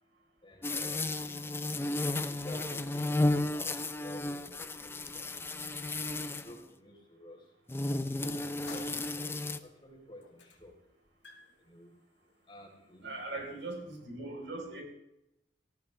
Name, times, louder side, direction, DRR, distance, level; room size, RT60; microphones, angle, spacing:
voice 1, 0.4-1.6 2.3-5.8 6.3-7.4 8.2-10.7 11.6-11.9 12.5-13.2, left 1 dB, 30° left, 0 dB, 3.5 m, -51 dB
sound 1, 0.6-6.6 7.7-9.6, left 2 dB, 15° left, 0.6 m, -33 dB
sound 2, 8.7-9.7 10.2-10.7 11.0-13.8, left 5 dB, 75° left, 2.2 m, -55 dB
voice 2, 13.0-14.8, right 2 dB, 85° right, 1 dB, 4.2 m, -40 dB
18.5 x 14.0 x 3.3 m, 0.87 s
head